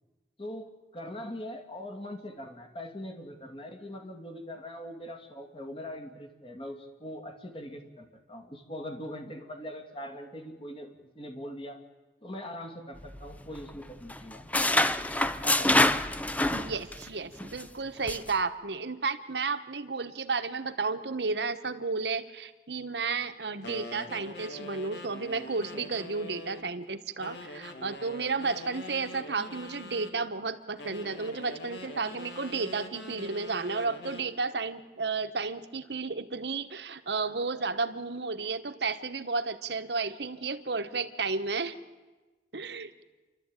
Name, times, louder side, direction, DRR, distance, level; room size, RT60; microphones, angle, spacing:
voice 1, 0.4-10.9 11.1-11.8 12.2-14.6 15.4-15.8, left 1 dB, 30° left, 4 dB, 2.2 m, -41 dB
sound 1, 13.0-13.8 14.1-17.1 17.4-17.6 18.1-18.3, left 1 dB, 10° left, 0.6 m, -26 dB
voice 2, 16.5-41.8 42.5-42.9, right 4 dB, 75° right, 10 dB, 1.2 m, -32 dB
sound 2, 23.6-26.7 27.2-30.2 30.8-34.3, left 1 dB, 75° left, 2.4 m, -44 dB
28.5 x 12.5 x 9.0 m, 1.2 s
head